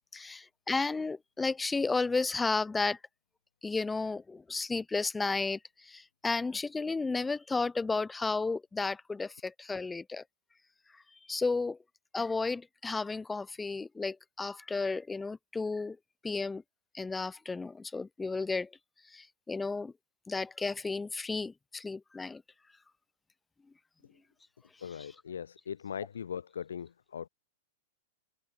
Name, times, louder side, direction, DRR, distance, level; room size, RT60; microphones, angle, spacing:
voice 1, 0.1-3.0 3.6-10.2 11.3-11.8 12.1-16.0 16.2-16.6 16.9-18.7 19.1-19.9 20.3-22.4, left 3 dB, 10° left, 0.3 m, -33 dB
voice 2, 24.8-27.3, left 8 dB, 85° left, 0.5 m, -40 dB
hypercardioid pair, 115°, 0 cm